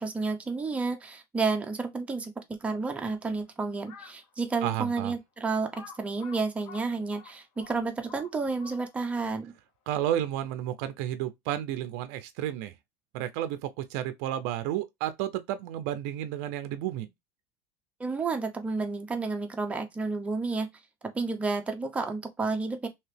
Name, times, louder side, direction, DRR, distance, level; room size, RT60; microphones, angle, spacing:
voice 1, 0.0-2.3 2.6-5.7 6.0-9.5 18.0-20.7 21.1-22.9, right 4 dB, 15° right, 0.7 m, -31 dB
Crow, 3.7-4.2 4.8-4.9 5.7-9.1, left 7 dB, 60° left, 1.4 m, -49 dB
voice 2, 4.6-5.1 9.9-12.7 13.1-17.1, right 12 dB, 70° right, 0.5 m, -32 dB
2.9 x 2.8 x 3.2 m
supercardioid pair, 130°, 9 cm